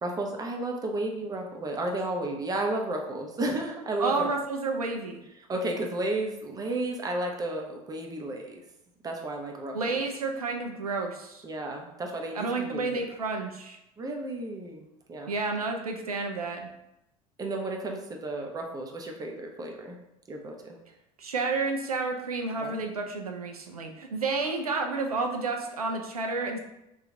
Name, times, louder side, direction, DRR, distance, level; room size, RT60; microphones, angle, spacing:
voice 1, 0.0-4.3 5.4-8.6 9.0-9.9 11.4-13.0 14.0-15.3 17.4-20.0 20.3-20.8 22.6-22.8 24.4-24.8, right 2 dB, 20° right, 1 dB, 0.6 m, -33 dB
voice 2, 4.0-5.2 9.7-11.4 12.4-13.8 15.3-16.7 21.2-26.6, right 3 dB, 85° right, 3 dB, 0.5 m, -30 dB
2.9 x 2.4 x 3.7 m, 0.88 s
figure-of-eight pair, 65°, 18 cm